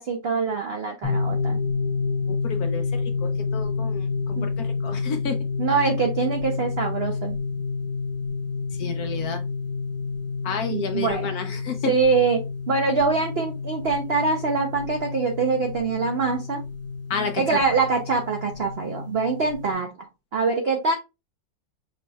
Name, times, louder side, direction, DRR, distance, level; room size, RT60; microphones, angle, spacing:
voice 1, 0.0-1.6 4.4-4.5 5.6-7.4 10.7-11.3 11.9-16.6 17.4-20.1 20.3-20.9, right 4 dB, 70° right, 0.6 m, -24 dB
sound 1, 1.0-19.7, left 4 dB, 10° left, 1.1 m, -29 dB
voice 2, 2.3-5.4 8.8-9.4 10.4-11.9 17.1-17.6, left 6 dB, 70° left, 1.0 m, -31 dB
5.2 x 3.2 x 2.2 m
omnidirectional pair, 2.0 m